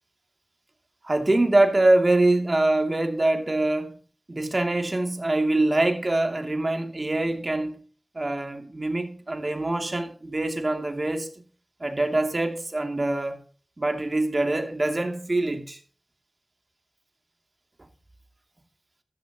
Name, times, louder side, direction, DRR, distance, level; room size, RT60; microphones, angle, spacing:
voice 1, 1.0-3.9 4.3-7.7 8.1-11.3 11.8-13.4 13.8-15.8, right 2 dB, 40° right, 2.6 m, -24 dB
14.0 x 11.0 x 2.9 m
wide cardioid pair, 55°, 0 cm